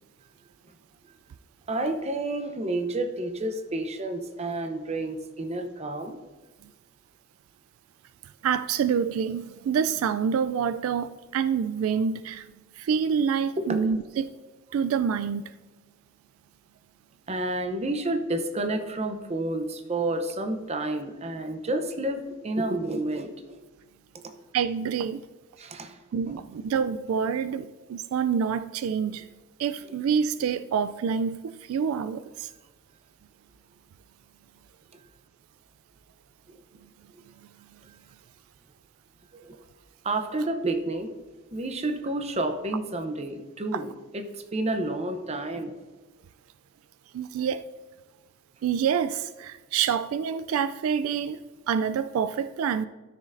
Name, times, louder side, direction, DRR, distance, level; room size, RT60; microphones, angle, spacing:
voice 1, 1.7-6.2 13.6-13.8 17.3-23.6 24.2-24.3 25.6-26.0 26.3-26.4 36.5-36.6 39.3-39.5 40.0-41.1 41.5-45.7, right 2 dB, 30° right, 6 dB, 0.7 m, -30 dB
voice 2, 8.4-12.5 12.8-14.3 14.7-15.5 24.5-25.2 26.1-29.3 29.6-32.5 43.7-43.8 47.1-47.6 48.6-52.9, right 7 dB, 85° right, 14 dB, 0.3 m, -27 dB
13.0 x 6.4 x 2.6 m, 1.2 s
head